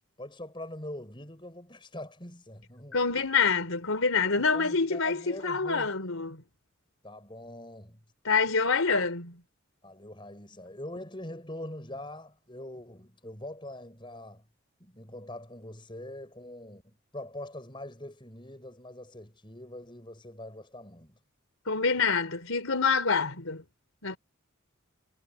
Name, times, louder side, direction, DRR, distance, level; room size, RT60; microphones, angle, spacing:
voice 1, 0.2-3.0 4.4-5.9 7.0-8.0 9.8-14.4 14.8-21.2, left 1 dB, 25° left, 6.4 m, -43 dB
voice 2, 2.9-6.4 8.2-9.4 21.7-23.6 24.0-24.2, left 5 dB, 85° left, 3.4 m, -26 dB
head